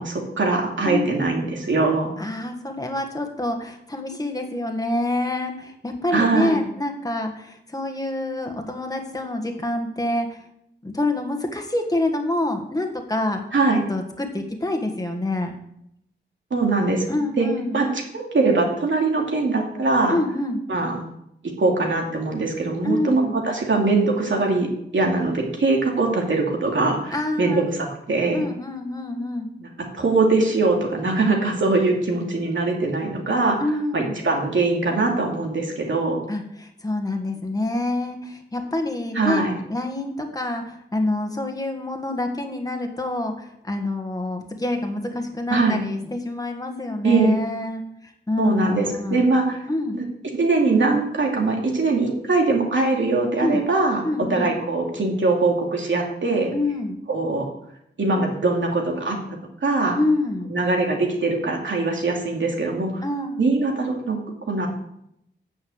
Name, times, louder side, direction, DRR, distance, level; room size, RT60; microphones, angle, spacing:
voice 1, 0.0-2.1 6.1-6.6 13.5-13.8 16.5-17.1 17.4-17.5 17.7-17.9 18.1-20.2 20.7-21.0 21.6-24.7 24.9-28.4 29.6-29.7 29.9-33.6 33.9-36.2 39.1-39.6 45.5-45.8 47.0-47.4 48.4-49.6 49.9-50.0 50.3-54.0 54.3-56.5 57.1-57.5 58.0-59.2 59.6-60.0 60.5-63.0 63.4-64.2 64.5-64.7, right 3 dB, 75° right, 0 dB, 2.6 m, -22 dB
voice 2, 0.8-1.2 2.2-10.4 10.8-13.4 13.9-15.5 17.1-17.8 20.1-20.6 22.8-23.4 27.1-27.7 28.3-29.5 33.6-34.2 36.3-39.4 39.7-49.3 49.7-50.0 53.4-53.6 54.0-54.5 56.5-57.0 59.9-60.5 63.0-63.4, left 2 dB, 20° left, 4 dB, 1.6 m, -26 dB
9.7 x 6.4 x 8.0 m, 0.76 s
wide cardioid pair, 115°, 20 cm